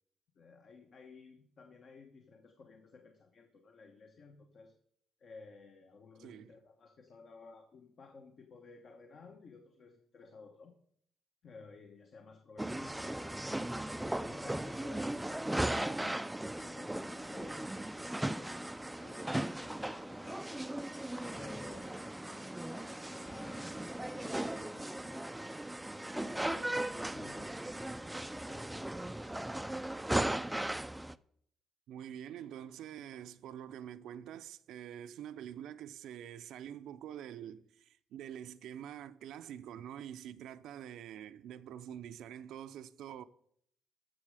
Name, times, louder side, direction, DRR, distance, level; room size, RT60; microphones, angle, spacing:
voice 1, 0.3-4.7 5.2-10.7 11.4-13.3 13.7-16.0 16.5-20.7 21.2-25.4 26.0-29.4, left 4 dB, 55° left, 1.3 m, -55 dB
voice 2, 6.2-6.5 31.9-43.2, right 10 dB, 80° right, 0.6 m, -46 dB
sound 1, 12.6-31.1, right 1 dB, 10° right, 0.4 m, -37 dB
14.0 x 6.5 x 4.9 m
cardioid pair, 90°, 0 cm